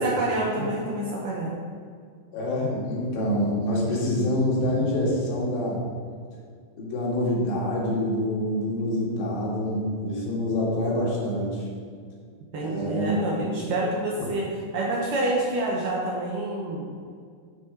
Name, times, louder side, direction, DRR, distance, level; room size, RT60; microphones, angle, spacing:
voice 1, 0.0-1.6 12.5-14.5 14.7-16.9, right 2 dB, 70° right, -3 dB, 2.1 m, -27 dB
voice 2, 2.3-5.8 6.8-11.7 12.6-13.1, left 1 dB, 85° left, -4 dB, 4.0 m, -26 dB
11.0 x 4.1 x 5.1 m, 2.1 s
omnidirectional pair, 4.8 m